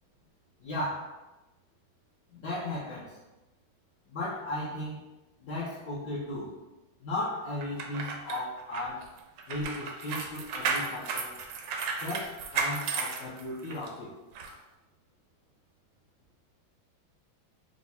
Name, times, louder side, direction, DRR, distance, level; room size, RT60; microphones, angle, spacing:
voice 1, 0.6-1.2 2.3-3.2 4.1-5.0 5.4-6.5 7.0-9.1 9.5-11.4 12.0-14.1, left 1 dB, 65° left, -6 dB, 1.1 m, -36 dB
sound 1, 7.6-13.9 14.3-14.5, right 4 dB, 75° right, 1.2 m, -34 dB
4.6 x 2.0 x 4.0 m, 1.1 s
omnidirectional pair, 2.2 m